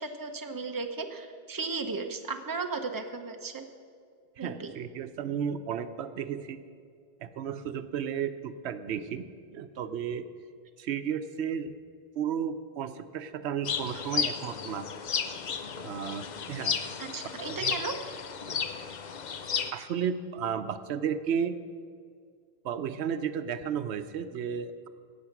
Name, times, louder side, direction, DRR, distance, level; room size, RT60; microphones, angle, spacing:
voice 1, 0.0-3.6 4.4-4.7 17.0-17.9, right 4 dB, 20° right, 5 dB, 0.8 m, -35 dB
voice 2, 4.4-6.6 7.2-9.3 9.5-10.2 10.8-11.7 12.2-14.9 15.8-16.7 17.5-17.8 19.7-21.6 22.6-24.9, right 8 dB, 85° right, 11 dB, 0.9 m, -33 dB
sound 1, 13.6-19.7, left 6 dB, 50° left, 0.7 m, -33 dB
17.0 x 7.0 x 5.9 m, 2.2 s
omnidirectional pair, 1.1 m